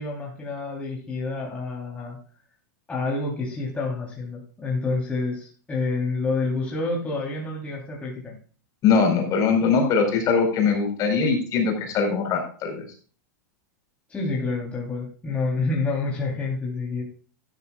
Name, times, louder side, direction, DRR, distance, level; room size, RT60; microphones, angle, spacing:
voice 1, 0.0-2.2 2.9-8.4 14.1-17.0, left 3 dB, 10° left, -4 dB, 3.5 m, -28 dB
voice 2, 8.8-12.8, left 5 dB, 35° left, 3 dB, 4.7 m, -21 dB
12.5 x 12.5 x 2.4 m, 0.40 s
supercardioid pair, 135°, 10 cm